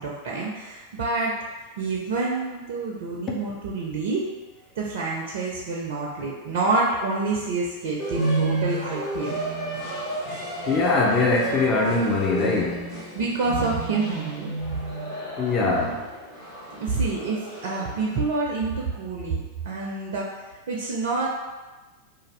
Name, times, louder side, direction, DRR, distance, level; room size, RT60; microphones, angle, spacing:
voice 1, 0.0-1.4 1.8-4.3 4.8-9.4 13.1-14.8 16.8-21.3, right 3 dB, 55° right, -3 dB, 0.4 m, -27 dB
sound 1, 8.0-18.2, right 2 dB, 45° left, 0.9 m, -31 dB
voice 2, 10.7-12.9 15.4-16.0, left 3 dB, 25° left, -2 dB, 0.4 m, -22 dB
2.5 x 2.3 x 3.1 m, 1.2 s
figure-of-eight pair, 90°, 0 cm